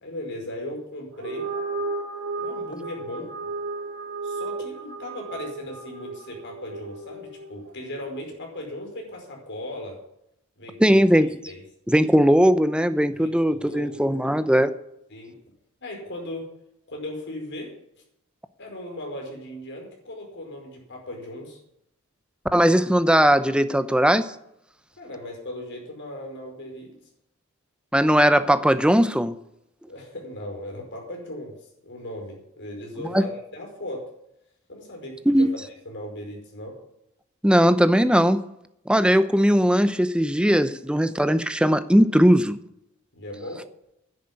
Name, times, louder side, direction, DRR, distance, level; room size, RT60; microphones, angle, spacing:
voice 1, 0.0-1.4 2.4-3.3 4.2-10.0 10.6-11.0 11.5-11.6 13.1-14.0 15.1-15.3 15.8-16.5 16.9-17.7 18.6-21.6 25.0-26.9 29.9-31.6 31.8-34.1 34.7-35.5 35.8-36.8 43.1-43.6, left 1 dB, 60° left, 0 dB, 5.1 m, -37 dB
sound 1, 1.1-7.7, right 3 dB, 70° right, 2.0 m, -34 dB
voice 2, 10.8-11.3 11.9-14.7 22.5-24.3 27.9-29.4 33.1-33.2 35.3-35.5 37.4-38.4 38.9-42.6, equal, 5° right, 12 dB, 0.7 m, -19 dB
10.5 x 8.4 x 9.8 m, 0.79 s
head